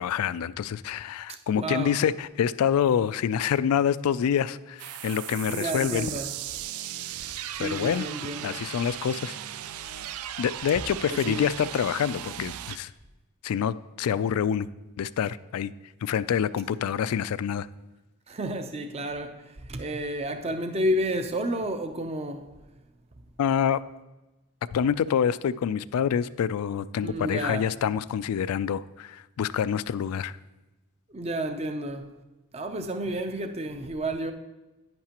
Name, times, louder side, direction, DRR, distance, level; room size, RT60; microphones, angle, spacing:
voice 1, 0.0-6.1 7.6-8.1 8.4-9.4 10.4-12.9 13.4-14.7 15.0-15.7 16.0-17.7 23.4-23.8 24.7-30.4, left 8 dB, 80° left, 0.3 m, -26 dB
voice 2, 1.5-2.0 5.5-6.3 7.5-8.6 11.1-11.4 18.3-22.6 27.0-27.7 31.1-32.1 32.5-34.3, right 1 dB, 30° right, 0.5 m, -31 dB
sound 1, 4.8-12.8, right 11 dB, 80° right, 0.4 m, -37 dB
10.5 x 9.5 x 2.9 m
head